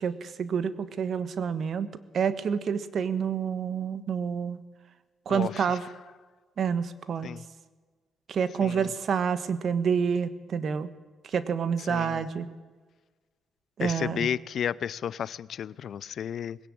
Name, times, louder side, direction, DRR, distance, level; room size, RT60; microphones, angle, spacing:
voice 1, 0.0-1.9 2.1-4.6 5.2-5.8 6.6-7.3 8.3-10.9 11.2-12.5 13.8-14.3, right 7 dB, 55° right, 1.3 m, -28 dB
voice 2, 5.3-5.8 7.2-7.4 8.6-8.9 11.8-12.2 13.8-16.6, left 9 dB, 65° left, 0.6 m, -33 dB
20.5 x 17.0 x 8.8 m
cardioid pair, 90°, 0 cm